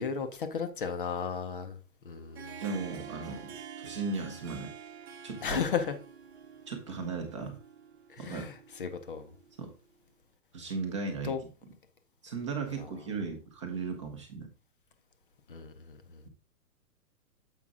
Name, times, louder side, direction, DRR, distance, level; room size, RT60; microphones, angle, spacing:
voice 1, 0.0-1.8 2.0-2.6 5.4-6.0 8.1-9.3 11.2-11.4 12.8-12.9 15.5-16.2, left 6 dB, 35° left, 0.6 m, -34 dB
Harp, 2.1-9.8, right 7 dB, 45° right, 0.9 m, -48 dB
voice 2, 2.6-4.7 5.2-5.6 6.7-7.6 8.2-8.5 9.6-9.7 10.5-11.3 12.2-14.5, right 4 dB, 20° right, 0.7 m, -36 dB
7.3 x 5.2 x 3.6 m
hypercardioid pair, 170°, 47 cm